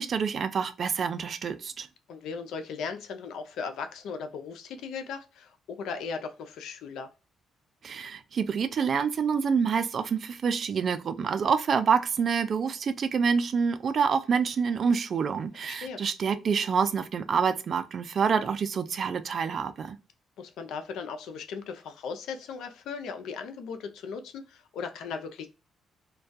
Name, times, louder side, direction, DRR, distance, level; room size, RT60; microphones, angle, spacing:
voice 1, 0.0-1.9 7.8-20.0, right 6 dB, 55° right, 0.3 m, -27 dB
voice 2, 2.1-7.1 15.6-16.0 20.4-25.5, left 5 dB, 80° left, 0.4 m, -37 dB
2.2 x 2.2 x 2.5 m
cardioid pair, 90°, 0 cm